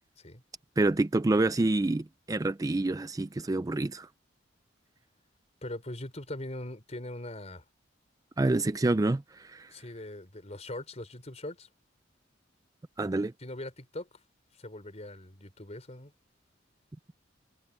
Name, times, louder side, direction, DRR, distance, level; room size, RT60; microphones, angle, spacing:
voice 1, 0.8-4.1 8.4-9.7 13.0-13.3, right 2 dB, 20° right, 0.4 m, -27 dB
voice 2, 5.6-7.6 9.7-11.7 13.4-14.1 14.6-16.1, left 1 dB, 35° left, 4.4 m, -41 dB
head